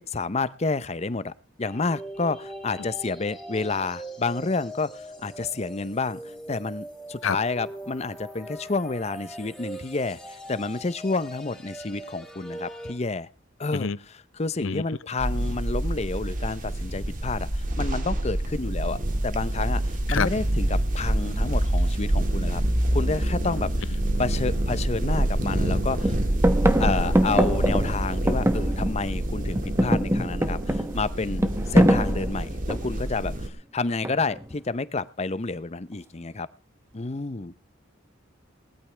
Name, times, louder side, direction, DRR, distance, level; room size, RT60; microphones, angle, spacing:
voice 1, 0.0-6.2 6.5-13.3 13.6-22.6 22.9-26.2 26.8-36.5 36.9-37.5, left 3 dB, 35° left, 0.7 m, -30 dB
sound 1, 1.6-12.9, right 1 dB, 5° left, 3.7 m, -41 dB
voice 2, 7.2-7.4 13.7-14.0 14.6-14.8 20.1-20.3, left 6 dB, 85° left, 0.6 m, -25 dB
sound 2, 15.2-33.5, right 1 dB, 40° right, 2.1 m, -26 dB
sound 3, 24.6-24.7 25.2-25.7 26.0-29.2 29.5-33.1 34.0-34.5, right 1 dB, 15° right, 1.0 m, -24 dB
19.5 x 13.5 x 3.3 m
head